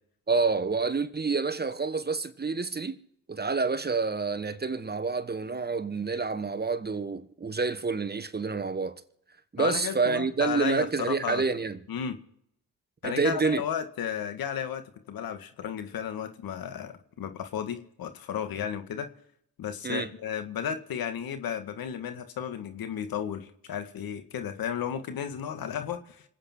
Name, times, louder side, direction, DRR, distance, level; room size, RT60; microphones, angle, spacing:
voice 1, 0.3-3.0 3.3-9.0 9.5-11.8 13.0-13.6 19.8-20.1, right 4 dB, 25° right, 1.4 m, -28 dB
voice 2, 9.6-11.4 11.9-12.2 13.0-19.1 19.6-26.2, left 8 dB, 70° left, 1.9 m, -34 dB
25.5 x 8.8 x 4.5 m
supercardioid pair, 60°, 37 cm